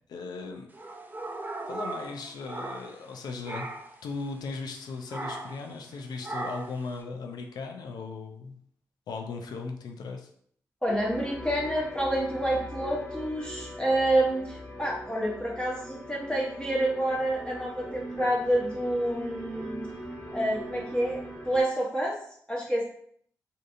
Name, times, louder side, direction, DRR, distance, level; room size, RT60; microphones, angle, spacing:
voice 1, 0.1-0.7 1.7-3.7 4.0-8.5 9.1-10.3, left 4 dB, 70° left, 3 dB, 0.4 m, -37 dB
sound 1, 0.7-3.1 3.4-4.0 5.1-5.7 6.2-6.8, right 2 dB, 25° right, 0.5 m, -37 dB
voice 2, 10.8-19.8 20.3-22.1 22.5-22.8, right 1 dB, 15° left, -4 dB, 0.9 m, -28 dB
sound 2, 10.9-21.6, equal, 30° left, 1.4 m, -40 dB
2.6 x 2.5 x 2.5 m, 0.63 s
supercardioid pair, 40°, 7 cm